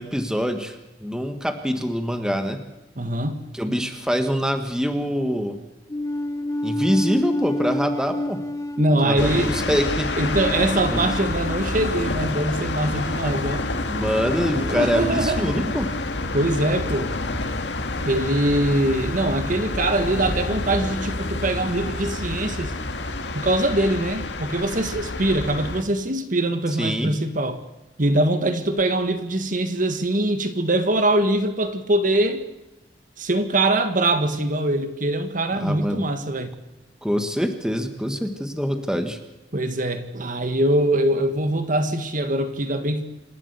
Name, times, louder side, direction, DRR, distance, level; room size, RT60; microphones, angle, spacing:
voice 1, 0.0-2.6 3.5-5.6 6.6-8.4 8.9-10.1 10.9-11.0 13.8-15.9 26.8-27.1 35.6-36.1 37.0-39.2, equal, 5° right, 7 dB, 1.5 m, -25 dB
voice 2, 3.0-3.4 8.8-9.5 10.2-13.7 14.6-15.7 16.3-17.1 18.0-22.7 23.3-27.6 28.0-32.4 33.2-36.5 39.5-43.0, right 1 dB, 50° right, 9 dB, 1.7 m, -23 dB
sound 1, 5.9-12.3, left 1 dB, 20° left, 1.0 m, -29 dB
sound 2, 9.2-25.8, left 2 dB, 90° left, 1.8 m, -28 dB
27.0 x 12.0 x 8.3 m, 0.97 s
head